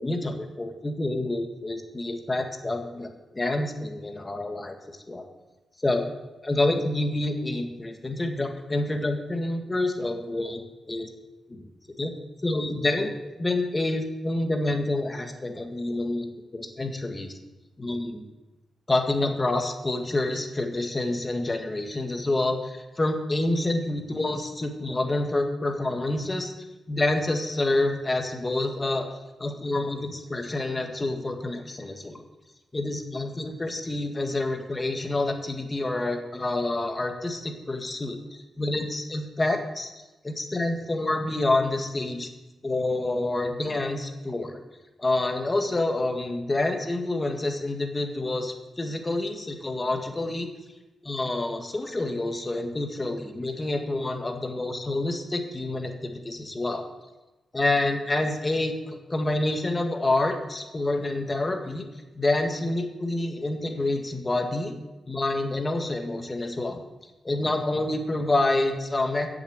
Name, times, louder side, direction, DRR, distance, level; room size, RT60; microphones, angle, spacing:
voice 1, 0.0-4.7 5.1-5.3 5.8-6.0 6.4-10.6 10.9-11.1 11.5-11.6 12.0-12.1 12.4-13.1 13.4-16.2 16.5-17.3 17.8-18.2 18.9-26.5 26.9-29.1 29.4-32.2 32.7-39.9 40.2-42.3 42.6-44.5 45.0-50.5 51.0-56.8 57.5-61.8 62.1-64.7 65.1-66.8 67.2-69.3, left 2 dB, 25° left, 4 dB, 1.6 m, -27 dB
7.9 x 7.0 x 7.9 m, 1.1 s
cardioid pair, 75°, 0 cm